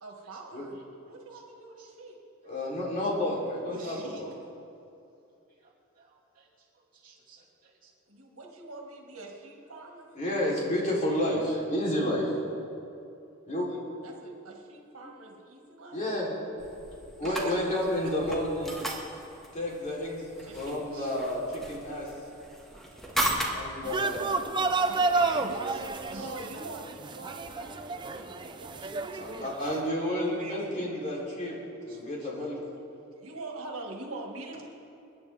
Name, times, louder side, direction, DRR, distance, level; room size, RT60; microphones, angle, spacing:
voice 1, 0.0-2.2 8.1-10.1 14.0-16.0 20.4-20.8 24.9-25.1 25.4-25.6 26.1-28.9 33.2-34.6, right 2 dB, 85° right, 1 dB, 1.9 m, -44 dB
voice 2, 1.1-1.9 3.7-4.2 5.6-5.7 6.0-6.5 7.0-7.9 17.2-17.6 20.9-21.1 22.6-22.9 23.8-23.9 24.6-25.8 26.1-26.3 28.8-29.3 29.6-31.0 31.9-32.4, right 2 dB, 40° right, -5 dB, 2.9 m, -48 dB
voice 3, 2.4-4.3 10.1-12.3 13.4-13.7 15.9-16.3 16.7-18.8 19.5-20.3 20.5-22.1 23.5-24.3 29.2-32.6, left 1 dB, 35° left, -5 dB, 3.4 m, -31 dB
sound 1, 16.6-26.3, right 1 dB, ahead, 1.7 m, -37 dB
sound 2, 23.8-29.8, right 3 dB, 20° right, 0.6 m, -30 dB
28.5 x 9.9 x 3.5 m, 2.7 s
head